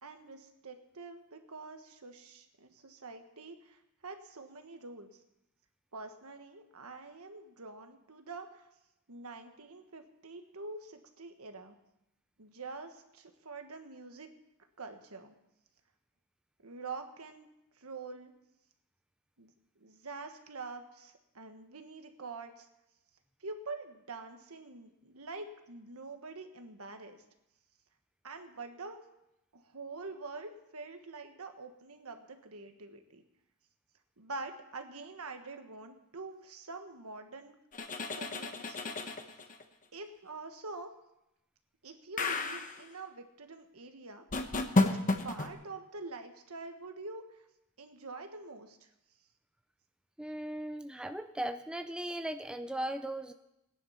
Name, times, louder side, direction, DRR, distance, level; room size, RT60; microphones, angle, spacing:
voice 1, 0.0-5.1 5.9-8.6 9.1-11.7 12.4-14.3 14.8-15.3 16.6-17.5 17.8-18.3 19.4-19.5 19.8-22.7 23.4-27.2 28.2-29.0 29.5-33.2 34.2-37.5 38.1-39.1 39.9-40.9 41.8-44.2 44.8-44.9 45.2-47.2 47.8-48.8, right 3 dB, 70° right, 6 dB, 1.5 m, -46 dB
sound 1, 37.7-39.6 42.2-42.8 44.3-45.5, left 2 dB, 35° left, 1.1 m, -31 dB
voice 2, 50.2-53.3, right 1 dB, 5° right, 8 dB, 0.5 m, -37 dB
18.5 x 10.5 x 5.7 m, 0.88 s
head